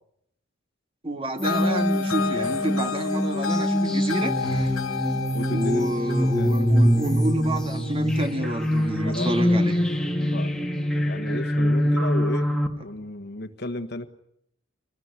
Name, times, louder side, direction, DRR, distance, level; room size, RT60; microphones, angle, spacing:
voice 1, 1.0-4.7 5.5-9.9, right 1 dB, 25° right, 7 dB, 2.1 m, -29 dB
sound 1, 1.4-8.6, left 5 dB, 90° left, 1.3 m, -31 dB
sound 2, 1.4-12.7, equal, 5° left, 2.2 m, -24 dB
voice 2, 5.3-6.6 9.0-9.3 9.8-10.7 11.0-12.5 12.8-14.1, left 1 dB, 50° left, 9 dB, 1.5 m, -34 dB
25.0 x 19.5 x 9.7 m, 0.75 s
head